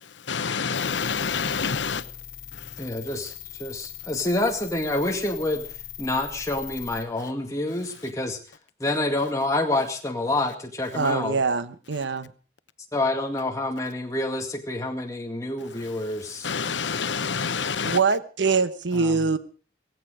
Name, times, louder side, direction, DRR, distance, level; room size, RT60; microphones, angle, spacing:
voice 1, 0.0-2.0 2.5-2.9 15.7-18.0, left 6 dB, 85° left, 0.9 m, -29 dB
sound 1, 0.7-7.0, left 11 dB, 45° left, 3.1 m, -40 dB
voice 2, 2.8-5.7 6.0-8.4 8.8-11.4 12.9-16.5 18.9-19.2, left 2 dB, 15° left, 2.1 m, -27 dB
voice 3, 10.9-12.3 17.9-19.4, right 4 dB, 85° right, 1.1 m, -23 dB
17.0 x 16.0 x 4.9 m
head